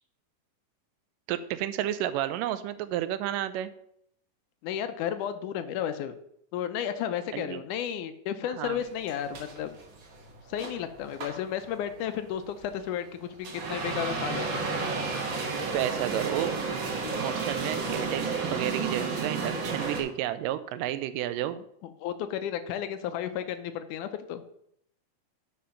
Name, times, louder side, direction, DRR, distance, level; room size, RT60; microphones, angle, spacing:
voice 1, 1.3-3.7 7.3-7.6 8.6-8.8 15.7-16.5 17.2-21.6, right 12 dB, 80° right, 13 dB, 2.1 m, -31 dB
voice 2, 4.6-6.1 6.5-9.8 10.5-14.7 17.1-17.2 21.8-24.4, left 9 dB, 80° left, 10 dB, 1.9 m, -33 dB
sound 1, 8.7-20.0, right 4 dB, 55° right, 1.4 m, -32 dB
8.5 x 5.1 x 5.7 m, 0.73 s
omnidirectional pair, 4.0 m